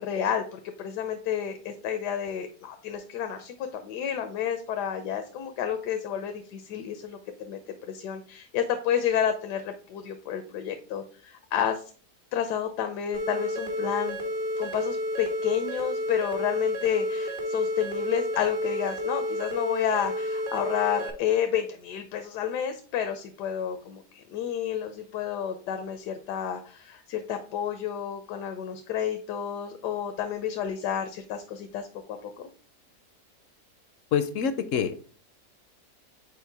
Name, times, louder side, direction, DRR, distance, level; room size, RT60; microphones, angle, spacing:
voice 1, 0.0-7.6 7.9-11.9 12.3-14.2 14.6-31.9 32.2-32.3, left 9 dB, 85° left, 7 dB, 1.3 m, -30 dB
sound 1, 13.1-21.1, equal, 80° right, 2.3 m, -31 dB
voice 2, 34.1-35.0, left 7 dB, 65° left, 11 dB, 0.8 m, -26 dB
5.5 x 4.4 x 4.6 m, 0.41 s
omnidirectional pair, 1.7 m